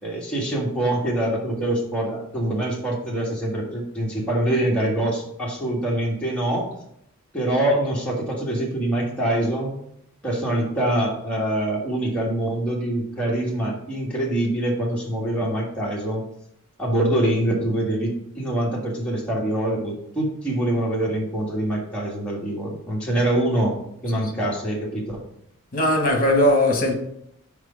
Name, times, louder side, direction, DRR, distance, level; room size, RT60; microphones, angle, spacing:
voice 1, 0.0-6.7 7.3-9.7 10.2-16.2 16.8-23.7 24.0-25.2, right 1 dB, 5° left, 1.6 m, -24 dB
voice 2, 25.7-26.9, left 1 dB, 40° left, 1.5 m, -19 dB
6.3 x 4.9 x 5.0 m
head